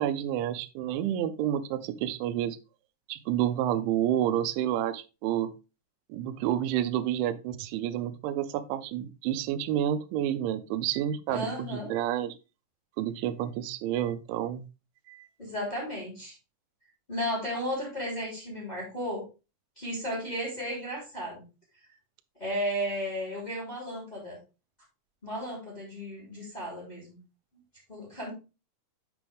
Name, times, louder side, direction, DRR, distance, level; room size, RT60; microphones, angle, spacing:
voice 1, 0.0-2.6 3.1-5.5 6.1-12.3 13.0-14.7 15.1-15.3, right 11 dB, 85° right, 10 dB, 2.9 m, -29 dB
voice 2, 11.3-11.9 15.4-16.3 17.1-19.3 19.8-21.4 22.4-24.4 25.2-27.2 27.9-28.3, equal, 10° left, -2 dB, 2.4 m, -34 dB
7.6 x 5.9 x 3.4 m, 0.30 s
omnidirectional pair, 5.4 m